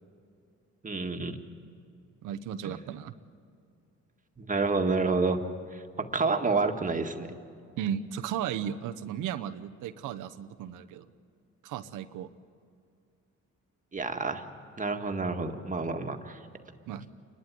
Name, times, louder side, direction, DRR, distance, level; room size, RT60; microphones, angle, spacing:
voice 1, 0.8-1.4 2.6-2.7 4.4-5.4 5.7-7.3 13.9-14.4 14.8-16.4, right 3 dB, 25° right, 5 dB, 1.8 m, -29 dB
voice 2, 2.2-3.1 7.8-11.1 11.6-12.3 16.9-17.1, right 9 dB, 90° right, 9 dB, 0.9 m, -35 dB
29.0 x 12.0 x 9.6 m, 2.4 s
cardioid pair, 90°, 30 cm